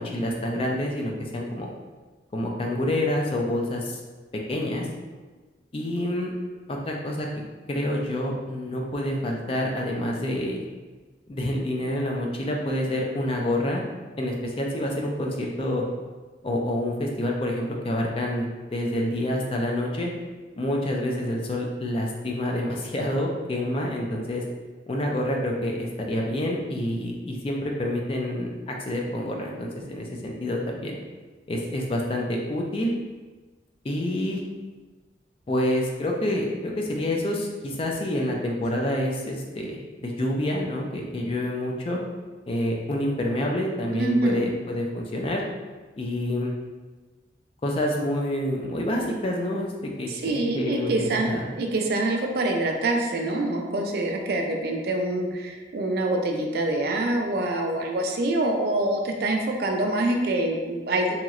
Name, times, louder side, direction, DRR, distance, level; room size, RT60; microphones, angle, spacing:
voice 1, 0.0-1.7 2.3-4.0 4.5-4.9 5.7-6.3 6.7-7.3 7.7-10.7 11.3-13.8 14.2-15.8 16.4-20.1 20.6-24.4 24.9-31.0 31.5-32.9 33.8-34.4 35.5-42.0 42.5-45.4 46.0-46.5 47.6-51.5, left 1 dB, 30° left, 0 dB, 0.3 m, -27 dB
voice 2, 44.0-44.4 50.1-51.3 51.6-61.1, right 2 dB, 55° right, 2 dB, 0.4 m, -25 dB
2.9 x 2.9 x 2.4 m, 1.3 s
head